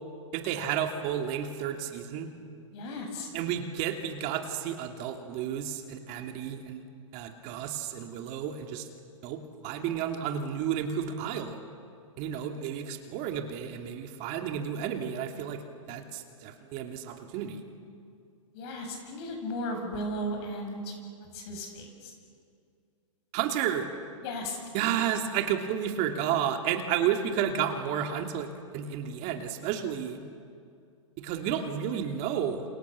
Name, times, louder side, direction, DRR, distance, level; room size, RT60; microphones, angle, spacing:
voice 1, 0.3-2.3 3.3-6.8 7.1-8.9 9.2-11.6 12.2-15.6 15.9-17.6 23.3-23.9 24.7-28.5 28.7-30.2 31.2-32.7, right 9 dB, 40° right, 4 dB, 2.8 m, -31 dB
voice 2, 2.7-3.3 18.5-20.9 21.3-22.1 24.2-24.6, equal, 50° left, 4 dB, 7.7 m, -35 dB
29.0 x 28.0 x 7.1 m, 2.3 s
hypercardioid pair, 120°, 17 cm